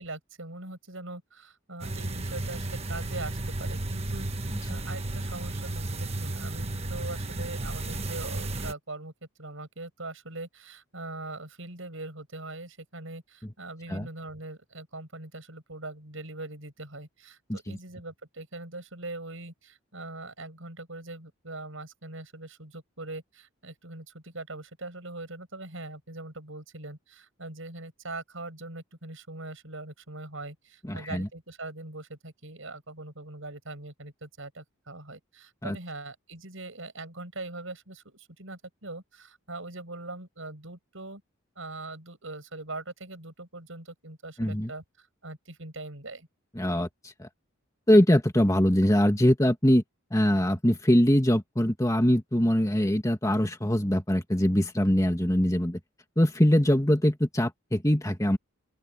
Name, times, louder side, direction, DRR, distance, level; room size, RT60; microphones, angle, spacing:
voice 1, 0.0-9.1 9.4-41.2 41.6-46.3, right 2 dB, 65° right, 7.4 m, -41 dB
sound 1, 1.8-8.7, right 2 dB, 30° right, 1.3 m, -33 dB
voice 2, 30.8-31.3 35.6-35.8 44.4-44.7 46.6-47.3 47.9-49.8 50.1-55.8 56.2-58.4, equal, 15° left, 2.2 m, -23 dB
open air
head